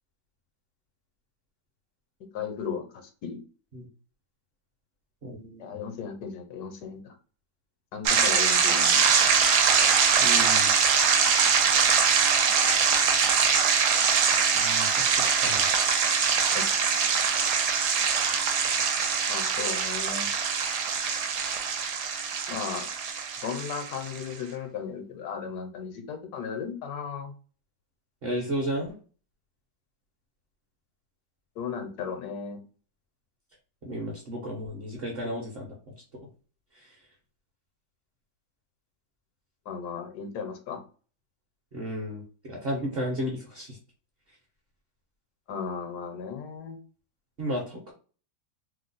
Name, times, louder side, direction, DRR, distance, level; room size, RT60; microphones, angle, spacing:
voice 1, 2.3-2.8 3.2-3.4 5.6-7.0 7.9-9.1 16.5-16.6 19.3-20.3 22.5-22.9 23.4-27.3 31.6-32.6 39.7-40.8 45.5-46.8, left 6 dB, 80° left, 6 dB, 1.1 m, -35 dB
voice 2, 5.2-5.7 10.2-10.7 14.5-14.9 15.4-15.7 28.2-28.9 33.8-35.7 41.7-43.8 47.4-47.9, equal, 50° right, -1 dB, 0.8 m, -33 dB
sound 1, 8.1-24.2, right 6 dB, 75° right, 1.1 m, -23 dB
2.8 x 2.0 x 3.8 m, 0.39 s
omnidirectional pair, 1.7 m